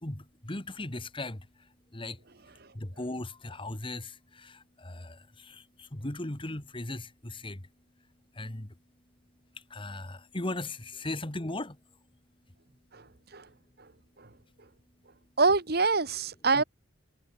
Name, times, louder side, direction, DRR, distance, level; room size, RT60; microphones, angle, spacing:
voice 1, 0.0-2.2 2.7-7.7 8.3-8.8 9.6-11.8 16.6-16.7, left 2 dB, 30° left, 1.8 m, -38 dB
voice 2, 15.4-16.6, right 4 dB, 60° right, 2.0 m, -25 dB
head